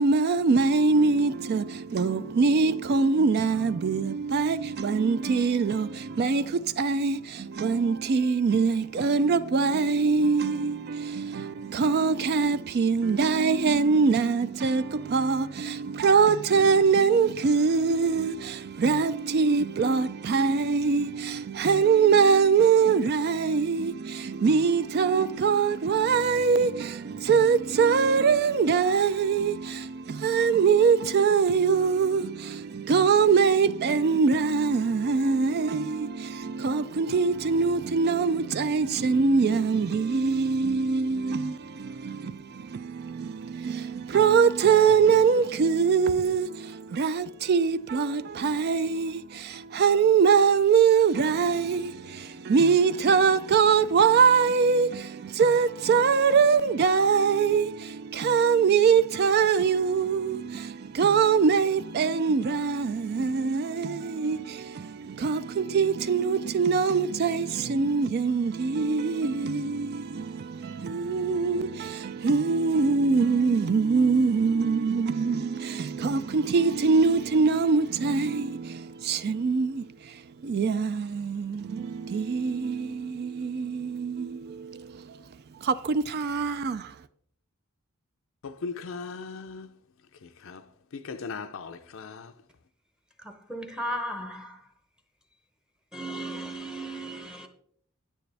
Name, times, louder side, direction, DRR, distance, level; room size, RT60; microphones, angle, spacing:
voice 1, 0.0-85.2 85.6-86.9, right 5 dB, 45° right, 0.3 m, -23 dB
voice 2, 88.4-89.7 90.4-90.6 90.9-92.3, left 4 dB, 60° left, 0.5 m, -38 dB
voice 3, 93.5-94.5 95.9-97.5, right 1 dB, 5° right, 0.7 m, -35 dB
9.3 x 9.2 x 3.4 m
head